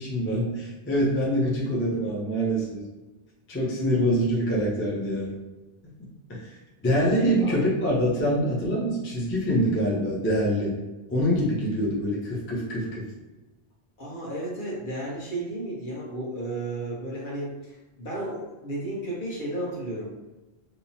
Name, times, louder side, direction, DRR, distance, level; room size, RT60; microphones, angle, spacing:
voice 1, 0.0-2.8 3.5-5.3 6.3-6.4 6.8-10.8 11.1-13.1, equal, 20° left, -5 dB, 0.4 m, -25 dB
voice 2, 7.2-7.6 14.0-20.1, right 1 dB, 55° left, -4 dB, 0.9 m, -33 dB
2.9 x 2.0 x 2.6 m, 1.1 s
omnidirectional pair, 1.1 m